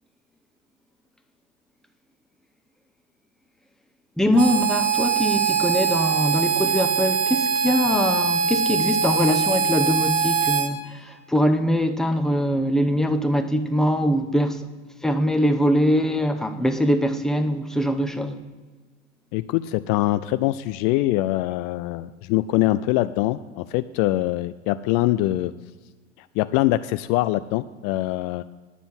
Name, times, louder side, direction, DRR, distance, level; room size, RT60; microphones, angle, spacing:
voice 1, 4.2-14.7 15.0-18.4, equal, ahead, 6 dB, 1.0 m, -22 dB
Harmonica, 4.4-10.7, right 6 dB, 80° right, 1.3 m, -22 dB
voice 2, 19.3-25.5 26.2-28.4, left 16 dB, 50° left, 14 dB, 0.5 m, -23 dB
10.0 x 6.9 x 7.8 m, 1.3 s
hypercardioid pair, 80°, 37 cm